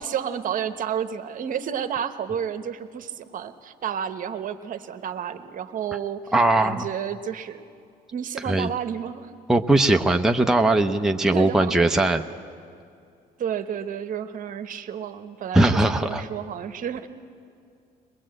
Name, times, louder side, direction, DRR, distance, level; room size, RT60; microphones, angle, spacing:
voice 1, 0.0-6.3 6.6-7.6 8.1-9.3 11.3-11.9 13.4-17.1, right 8 dB, 55° right, 9 dB, 1.0 m, -31 dB
voice 2, 6.3-6.9 8.4-8.7 9.5-12.2 15.5-16.2, right 2 dB, 5° right, 4 dB, 0.7 m, -20 dB
22.5 x 20.0 x 7.7 m, 2.4 s
cardioid pair, 110°, 17 cm